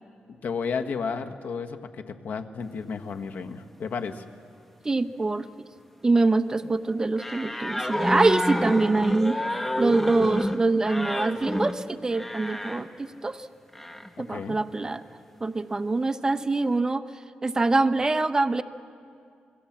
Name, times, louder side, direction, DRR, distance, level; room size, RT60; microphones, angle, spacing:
voice 1, 0.4-4.2 10.2-10.3 14.3-14.6, left 5 dB, 70° left, 7 dB, 1.5 m, -32 dB
voice 2, 4.8-5.5 6.0-9.4 9.8-13.5 14.2-15.0 15.4-17.1 17.4-18.6, right 3 dB, 20° right, 10 dB, 0.8 m, -24 dB
sound 1, 7.2-12.9 13.7-14.1, left 1 dB, 5° left, 1.1 m, -29 dB
28.0 x 21.5 x 7.4 m, 2.4 s
cardioid pair, 105°, 3 cm